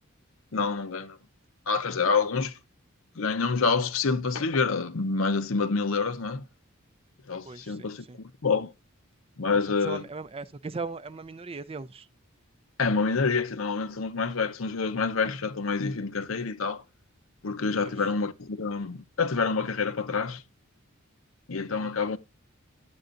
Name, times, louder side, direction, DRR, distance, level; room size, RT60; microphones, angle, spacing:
voice 1, 0.5-1.2 1.7-2.6 3.2-6.4 7.3-8.7 9.4-10.1 12.8-16.8 17.4-20.4 21.5-22.2, left 4 dB, 70° left, 0.8 m, -27 dB
voice 2, 7.5-8.2 9.8-12.0 17.8-17.9 21.7-21.9, right 4 dB, 30° right, 0.5 m, -38 dB
10.5 x 7.8 x 2.5 m
head